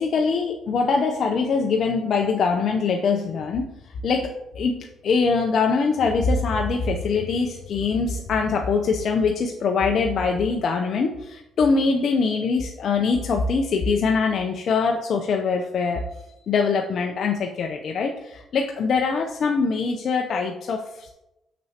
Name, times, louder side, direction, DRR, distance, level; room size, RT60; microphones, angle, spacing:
voice 1, 0.0-3.7 4.0-16.1 16.5-21.1, left 4 dB, 60° left, 2 dB, 0.5 m, -23 dB
6.1 x 6.0 x 2.8 m, 0.89 s
cardioid pair, 90°, 0 cm